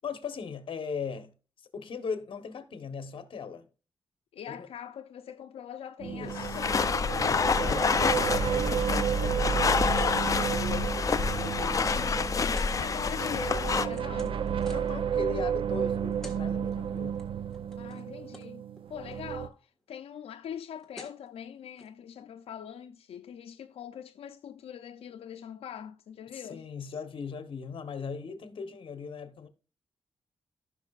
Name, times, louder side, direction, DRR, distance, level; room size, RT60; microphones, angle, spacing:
voice 1, 0.0-1.3 1.7-3.7 4.5-4.7 6.0-6.6 7.2-12.1 14.7-17.2 26.3-29.5, left 5 dB, 60° left, 1.1 m, -39 dB
voice 2, 4.3-7.0 7.7-8.0 11.9-12.5 12.8-14.7 17.6-18.6 18.9-26.6, left 9 dB, 90° left, 0.5 m, -43 dB
sound 1, 6.0-19.5, right 8 dB, 65° right, 0.5 m, -32 dB
sound 2, 6.3-13.9, left 5 dB, 35° left, 0.5 m, -28 dB
sound 3, 9.9-10.2 10.7-10.9 11.2-11.5 12.5-12.7 13.4-15.0 15.9-16.4 16.7-17.2 17.5-18.1 18.3-18.5 18.7-19.2 20.5-20.6 20.7-21.3 21.8-21.9, left 2 dB, 5° left, 1.6 m, -50 dB
15.0 x 6.0 x 2.4 m
wide cardioid pair, 150°, 10 cm